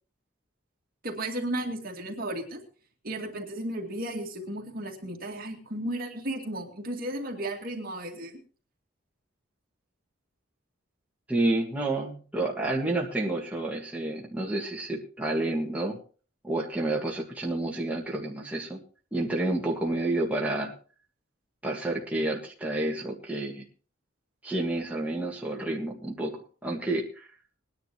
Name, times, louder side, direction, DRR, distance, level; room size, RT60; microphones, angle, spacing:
voice 1, 1.0-2.6 3.0-8.4, right 1 dB, 50° right, 2 dB, 2.3 m, -34 dB
voice 2, 11.3-16.0 16.4-18.8 19.1-20.7 21.6-23.6 24.4-27.3, right 2 dB, 10° right, -2 dB, 1.7 m, -29 dB
21.0 x 10.5 x 3.0 m, 0.37 s
head